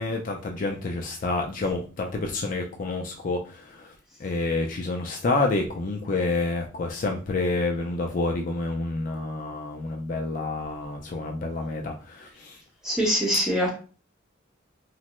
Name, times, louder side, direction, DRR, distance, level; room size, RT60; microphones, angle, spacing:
voice 1, 0.0-3.9 4.2-12.6, left 2 dB, 40° left, 1 dB, 0.4 m, -28 dB
voice 2, 12.8-13.7, equal, 5° right, -4 dB, 0.8 m, -23 dB
3.3 x 2.0 x 2.9 m, 0.37 s
head